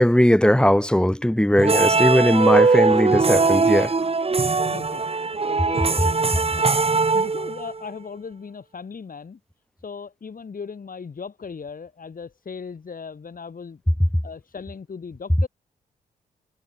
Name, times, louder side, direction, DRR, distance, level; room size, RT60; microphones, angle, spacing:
voice 1, 0.0-3.9, equal, 5° left, 4.3 m, -18 dB
sound 1, 1.6-7.9, right 4 dB, 30° right, 1.9 m, -20 dB
voice 2, 2.5-2.8 4.5-9.4 9.8-13.8 14.2-15.5, left 5 dB, 50° left, 7.1 m, -38 dB
supercardioid pair, 50°, 19 cm